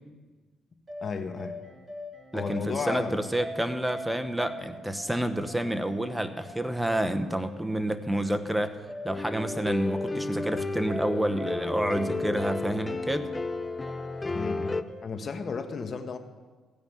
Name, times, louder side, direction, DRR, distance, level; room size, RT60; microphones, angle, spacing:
sound 1, 0.9-15.0, equal, 35° right, 2.7 m, -42 dB
voice 1, 1.0-1.6 2.3-3.2 14.3-16.2, left 5 dB, 45° left, 7 dB, 1.2 m, -34 dB
voice 2, 2.3-8.8 9.0-13.3, right 1 dB, 5° right, 9 dB, 0.9 m, -29 dB
sound 2, 9.1-14.8, left 3 dB, 20° left, 0.5 m, -32 dB
16.0 x 5.3 x 9.2 m, 1.4 s
cardioid pair, 90°, 0 cm